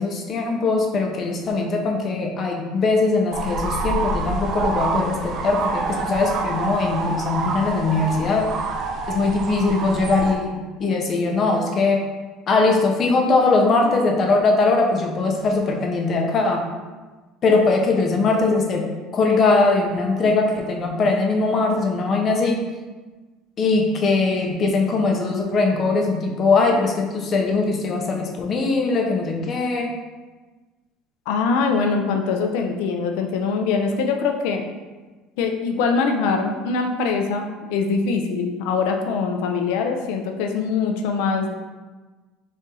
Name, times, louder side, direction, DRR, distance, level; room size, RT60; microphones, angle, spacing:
voice 1, 0.0-8.5 9.1-12.0 12.5-16.6 17.4-18.9 19.1-22.6 23.6-29.9, left 3 dB, 35° left, 1 dB, 0.7 m, -21 dB
sound 1, 3.3-10.3, right 3 dB, 50° right, 0.5 m, -27 dB
voice 2, 31.3-34.6 35.4-41.5, left 5 dB, 80° left, 4 dB, 0.5 m, -23 dB
4.2 x 2.6 x 3.7 m, 1.3 s
cardioid pair, 130°, 0 cm